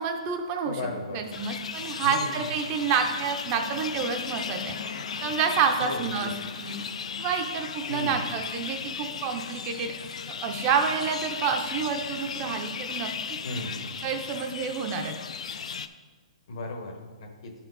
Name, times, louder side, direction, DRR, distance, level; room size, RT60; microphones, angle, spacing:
voice 1, 0.0-0.8 1.1-6.3 6.6-6.8 7.2-9.9 10.4-13.1 14.0-15.1, right 6 dB, 25° right, 4 dB, 0.5 m, -28 dB
voice 2, 0.6-1.3 2.0-2.4 5.8-6.3 7.9-8.3 13.4-13.9 16.5-17.5, left 2 dB, 55° left, 3 dB, 1.3 m, -36 dB
sound 1, 1.3-15.9, left 6 dB, 75° left, 0.4 m, -36 dB
11.0 x 4.4 x 4.0 m, 1.4 s
hypercardioid pair, 170°, 4 cm